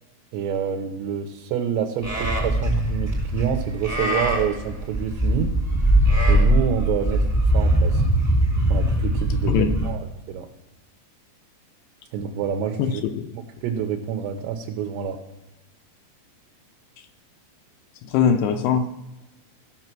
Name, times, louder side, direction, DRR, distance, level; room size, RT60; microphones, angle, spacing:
voice 1, 0.3-5.5 6.3-7.2 7.5-8.0 8.7-10.5 12.1-13.0 13.3-15.2, right 8 dB, 80° right, 3 dB, 2.9 m, -27 dB
Livestock farm animals working animals, 2.0-9.9, right 1 dB, 10° right, 0.7 m, -21 dB
voice 2, 18.1-18.9, left 7 dB, 80° left, 7 dB, 2.4 m, -20 dB
15.5 x 5.5 x 6.1 m, 1.0 s
omnidirectional pair, 5.1 m